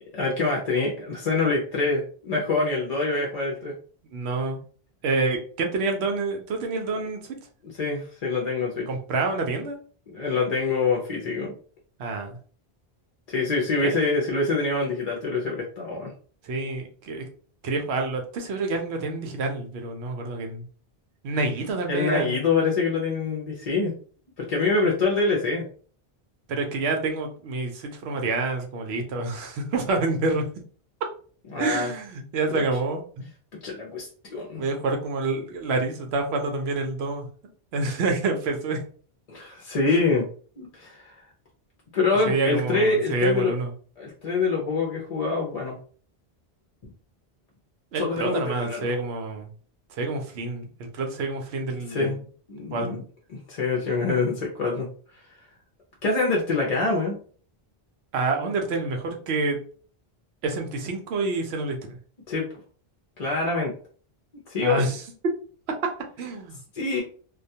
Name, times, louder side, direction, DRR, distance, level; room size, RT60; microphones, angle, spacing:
voice 1, 0.1-3.7 7.7-8.9 10.1-11.5 13.3-16.1 21.9-23.9 24.4-25.6 31.5-31.9 32.5-32.6 33.6-34.6 39.3-40.2 40.6-41.2 41.9-43.5 44.0-45.8 47.9-49.0 51.9-52.2 52.5-53.0 53.3-54.9 56.0-57.2 62.3-62.5 63.2-63.7 64.5-64.8 66.7-67.0, left 3 dB, 45° left, -2 dB, 0.6 m, -25 dB
voice 2, 4.1-4.6 5.0-7.4 8.9-9.8 12.0-12.4 13.8-14.0 16.4-17.2 17.6-20.7 21.2-22.4 26.5-30.4 31.6-33.2 34.6-37.3 37.7-38.8 39.9-40.0 42.3-43.7 47.9-49.5 49.9-52.2 52.7-53.0 58.1-59.6 60.4-61.8 64.6-65.0 65.8-65.9 66.2-66.6, right 3 dB, 80° right, 3 dB, 0.9 m, -27 dB
2.3 x 2.2 x 2.7 m, 0.43 s
omnidirectional pair, 1.1 m